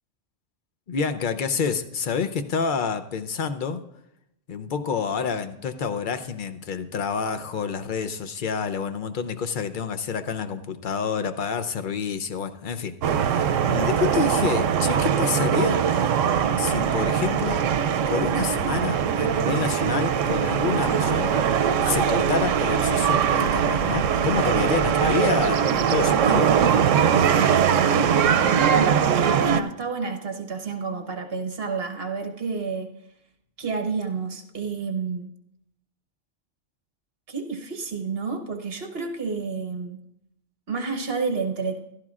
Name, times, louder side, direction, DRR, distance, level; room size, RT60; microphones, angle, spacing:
voice 1, 0.9-3.8 4.5-15.8 16.6-17.7 18.1-21.4 21.8-26.5, left 6 dB, 50° left, 9 dB, 0.7 m, -28 dB
sound 1, 13.0-29.6, right 8 dB, 90° right, 0.9 m, -21 dB
voice 2, 27.9-32.9 33.6-35.3 37.3-40.0 40.7-41.8, right 4 dB, 55° right, 4 dB, 1.3 m, -30 dB
15.0 x 12.5 x 2.4 m, 0.80 s
omnidirectional pair, 1.3 m